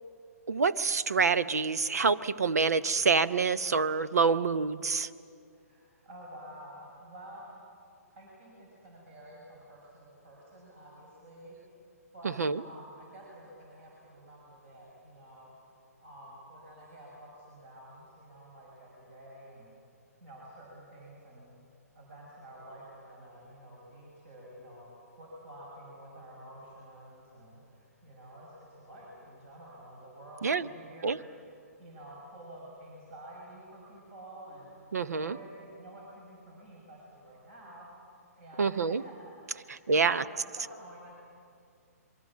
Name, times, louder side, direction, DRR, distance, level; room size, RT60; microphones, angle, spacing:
voice 1, 0.5-5.1 12.2-12.6 30.4-30.7 31.0-31.2 34.9-35.4 38.6-39.0 39.7-40.2, right 5 dB, 75° right, 14 dB, 0.8 m, -27 dB
voice 2, 5.5-7.6 8.1-11.6 12.1-19.8 20.2-21.5 21.9-31.5 31.8-34.8 35.0-37.9 38.3-41.1, right 1 dB, 45° right, -3 dB, 6.6 m, -50 dB
26.0 x 23.5 x 7.4 m, 2.3 s
figure-of-eight pair, 130°, 9 cm